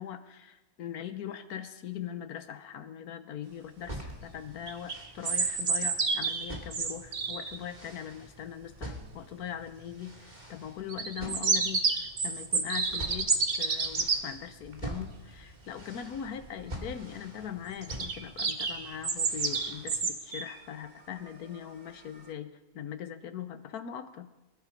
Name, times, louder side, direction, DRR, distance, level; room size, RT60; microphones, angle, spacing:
voice 1, 0.0-24.3, left 9 dB, 55° left, 10 dB, 1.2 m, -41 dB
sound 1, 3.8-20.0, right 1 dB, 20° right, 2.5 m, -46 dB
sound 2, 4.7-7.6 10.9-14.2 17.8-20.6, right 4 dB, 40° right, 0.9 m, -29 dB
22.5 x 11.0 x 5.2 m, 1.1 s
omnidirectional pair, 2.2 m